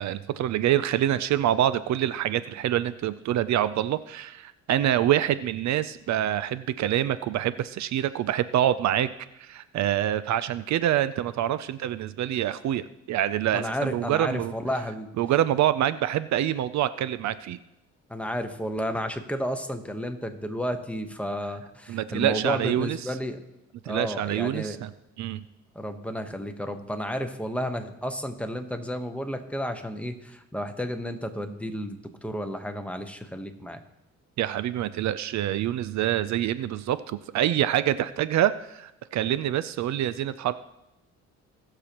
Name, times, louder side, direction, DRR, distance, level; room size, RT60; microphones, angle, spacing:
voice 1, 0.0-9.1 9.4-14.5 15.2-17.6 21.9-23.1 23.8-24.9 25.2-25.5 34.4-40.5, right 12 dB, 65° right, 15 dB, 0.5 m, -26 dB
voice 2, 13.5-15.1 18.1-23.4 23.8-24.8 25.7-33.8, equal, 5° left, 6 dB, 1.1 m, -32 dB
20.0 x 6.8 x 3.0 m, 0.89 s
cardioid pair, 90°, 30 cm